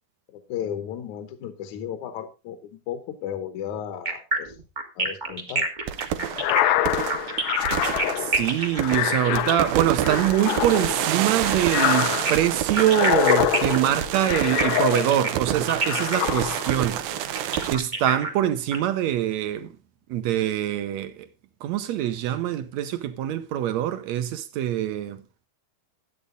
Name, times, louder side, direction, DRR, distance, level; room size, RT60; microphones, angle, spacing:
voice 1, 0.3-4.6 5.0-5.7, left 9 dB, 65° left, 2.1 m, -34 dB
sound 1, 4.1-10.8 12.1-18.8, right 2 dB, 40° right, 0.6 m, -28 dB
sound 2, 5.9-17.8, right 11 dB, 90° right, 2.7 m, -28 dB
sound 3, 6.3-15.4 15.8-16.8, left 13 dB, 80° left, 2.5 m, -26 dB
voice 2, 8.2-17.0 17.7-19.7 20.1-21.3 21.6-25.2, right 11 dB, 70° right, 1.8 m, -24 dB
12.5 x 8.4 x 3.9 m
omnidirectional pair, 4.1 m